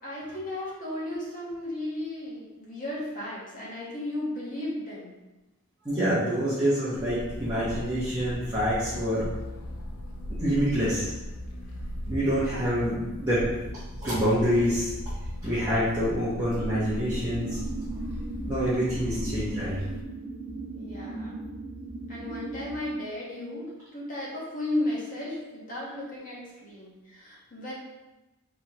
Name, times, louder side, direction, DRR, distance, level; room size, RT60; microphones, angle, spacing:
voice 1, 0.0-5.1 12.4-12.7 20.7-21.5 22.1-27.7, left 1 dB, 40° left, -6 dB, 1.3 m, -35 dB
voice 2, 5.8-9.3 10.3-11.1 12.1-14.9 15.4-17.6 18.5-19.8, equal, 15° right, -13 dB, 1.0 m, -26 dB
sound 1, 6.9-20.0, left 1 dB, 75° left, 0.6 m, -37 dB
sound 2, 16.5-22.8, right 2 dB, 55° right, 0.8 m, -37 dB
4.2 x 3.2 x 3.0 m, 1.0 s
head